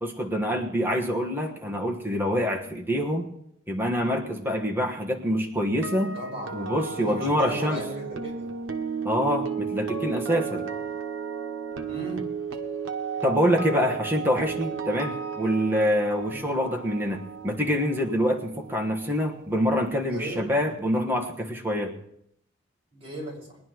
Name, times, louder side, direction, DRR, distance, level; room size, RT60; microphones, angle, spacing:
voice 1, 0.0-3.3 3.7-6.2 6.5-7.8 9.0-10.7 13.2-21.9, equal, 10° right, 0 dB, 1.4 m, -26 dB
sound 1, 5.6-19.7 19.9-20.2, right 6 dB, 90° right, 1.0 m, -34 dB
voice 2, 6.1-8.5 10.6-10.7 11.9-12.3 16.3-16.4 20.1-20.4 22.9-23.6, equal, 30° right, -3 dB, 5.8 m, -37 dB
21.5 x 11.0 x 3.1 m, 0.73 s
head